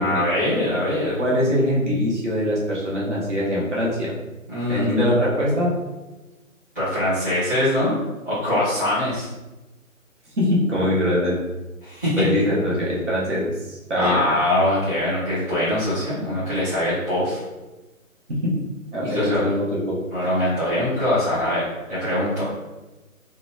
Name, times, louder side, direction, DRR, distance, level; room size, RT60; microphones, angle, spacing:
voice 1, 0.0-1.2 4.5-5.1 6.7-7.9 8.2-9.3 11.8-12.2 14.0-17.4 19.0-19.5 20.1-22.5, left 1 dB, 10° right, -17 dB, 0.8 m, -23 dB
voice 2, 1.2-4.1 4.7-5.7 10.4-11.4 12.2-14.2 18.3-18.5 18.9-20.0, left 1 dB, 55° right, -6 dB, 0.9 m, -22 dB
2.9 x 2.1 x 2.2 m, 1.1 s
figure-of-eight pair, 150°, 42 cm